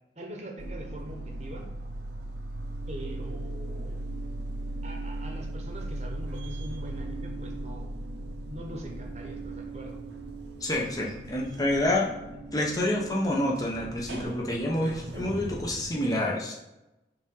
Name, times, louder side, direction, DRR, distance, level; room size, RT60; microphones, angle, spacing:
voice 1, 0.2-1.7 2.9-4.0 4.8-7.9 8.5-10.0, right 1 dB, 40° right, 1 dB, 1.0 m, -42 dB
sound 1, 0.6-15.9, right 1 dB, 85° right, 0.9 m, -38 dB
voice 2, 10.6-12.1 12.5-16.5, left 1 dB, 20° left, -2 dB, 0.9 m, -28 dB
5.0 x 3.6 x 5.4 m, 0.97 s
head